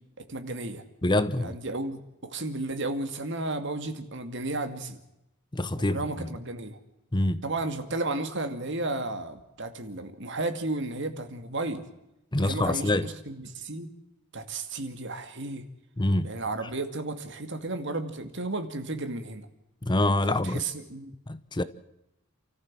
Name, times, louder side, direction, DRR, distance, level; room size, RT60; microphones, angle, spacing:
voice 1, 0.2-0.8 1.4-5.0 5.8-6.8 7.4-11.9 12.4-13.9 14.3-15.6 16.2-19.5 20.4-21.1, right 2 dB, 60° right, 2.4 m, -33 dB
voice 2, 1.0-1.6 5.5-6.3 7.1-7.4 12.3-13.1 16.0-16.3 19.8-20.6 21.3-21.6, left 1 dB, 20° left, 0.8 m, -26 dB
28.5 x 14.0 x 7.6 m
head